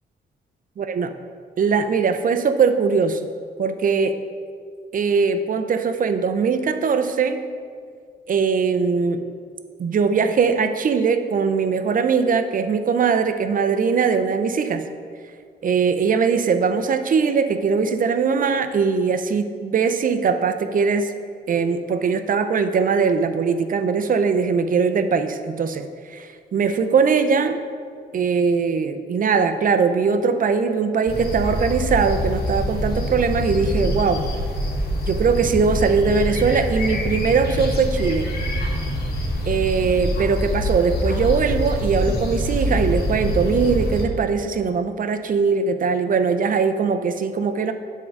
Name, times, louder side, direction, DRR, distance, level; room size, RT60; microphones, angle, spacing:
voice 1, 0.8-1.1 1.6-3.2 3.6-4.1 4.9-7.4 8.3-9.2 9.8-14.9 15.6-21.1 21.5-27.6 28.1-34.2 35.1-38.3 39.4-47.7, right 5 dB, 50° right, 9 dB, 0.5 m, -21 dB
sound 1, 31.1-44.0, equal, 60° left, 1.5 m, -25 dB
7.6 x 3.8 x 6.4 m, 2.1 s
cardioid pair, 80°, 18 cm